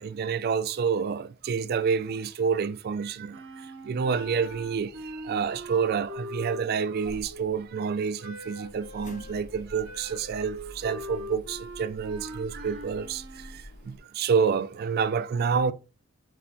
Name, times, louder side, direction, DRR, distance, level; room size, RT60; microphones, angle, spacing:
voice 1, 0.0-15.7, right 6 dB, 50° right, 0.3 m, -28 dB
Wind instrument woodwind instrument, 3.3-7.5 8.2-13.6, right 1 dB, 80° right, 0.7 m, -42 dB
sound 1, 4.1-6.7 7.0-14.0, left 1 dB, 40° left, 0.8 m, -49 dB
4.3 x 4.3 x 2.6 m
head